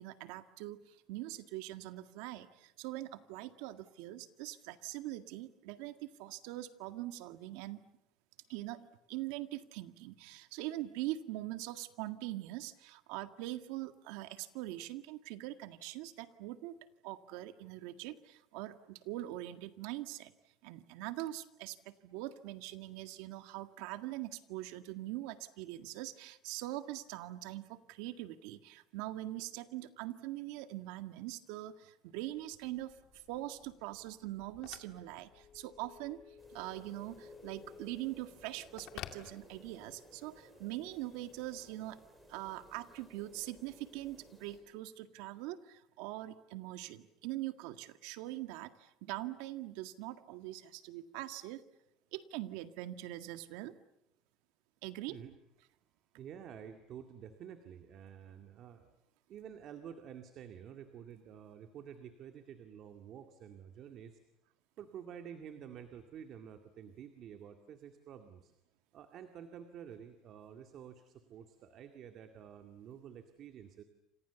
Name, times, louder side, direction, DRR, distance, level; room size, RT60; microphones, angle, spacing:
voice 1, 0.0-7.8 8.5-16.8 17.0-20.3 20.6-36.2 36.5-42.0 42.3-51.6 52.1-53.7 54.8-55.2, right 16 dB, 85° right, 10 dB, 1.8 m, -43 dB
Telephone, 32.3-40.1, left 10 dB, 55° left, 2.2 m, -54 dB
sound 1, 36.4-44.6, equal, 5° right, 7.2 m, -59 dB
voice 2, 56.2-58.9 59.3-64.2 64.8-68.5 68.9-73.8, right 8 dB, 45° right, 7 dB, 2.1 m, -50 dB
29.0 x 27.0 x 7.1 m, 0.84 s
cardioid pair, 150°, 0 cm